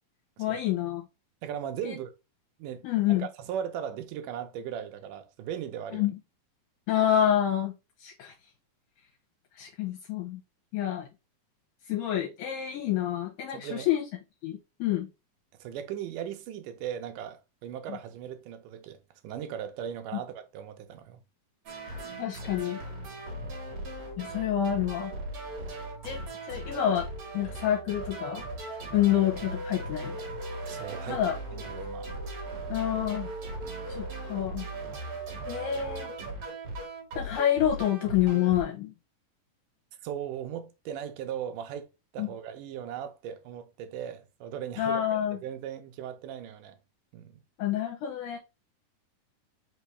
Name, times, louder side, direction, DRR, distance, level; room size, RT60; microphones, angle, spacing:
voice 1, 0.4-1.0 1.8-2.0 2.8-3.3 5.9-6.1 6.9-7.7 8.0-8.3 9.5-10.4 10.7-11.1 11.9-14.0 14.4-15.1 17.9-18.0 20.1-20.2 22.2-22.8 24.2-25.1 26.0-27.1 27.3-28.4 28.9-30.2 31.1-31.3 32.7-33.3 33.9-34.7 35.5-36.1 37.2-38.9 42.2-42.3 44.8-45.4 47.6-48.4, left 11 dB, 75° left, 2.4 m, -28 dB
voice 2, 1.4-2.1 2.6-2.9 3.2-6.1 13.5-13.9 15.6-21.2 23.4-23.8 30.7-31.2 31.5-32.1 33.6-34.0 40.0-41.9 42.1-46.8 47.1-47.4, right 9 dB, 80° right, 2.2 m, -38 dB
sound 1, 21.7-38.6, right 1 dB, 60° right, 2.7 m, -38 dB
5.5 x 2.7 x 3.2 m
omnidirectional pair, 3.7 m